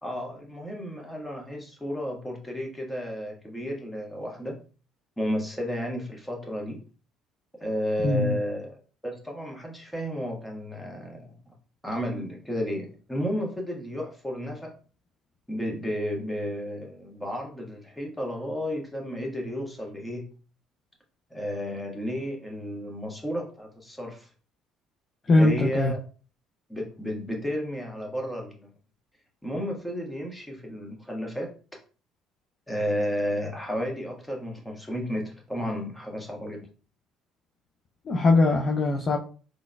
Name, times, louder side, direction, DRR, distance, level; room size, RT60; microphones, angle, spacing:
voice 1, 0.0-4.6 5.2-6.8 7.6-8.8 9.0-11.5 11.8-14.7 15.5-20.3 21.3-24.3 25.3-26.0 26.7-28.7 29.4-31.5 32.7-36.6, equal, 5° left, 0 dB, 1.4 m, -32 dB
voice 2, 8.0-8.4 25.3-25.9 38.1-39.2, left 2 dB, 45° left, 1 dB, 0.6 m, -21 dB
3.8 x 3.5 x 2.2 m, 0.38 s
hypercardioid pair, 55°, 0 cm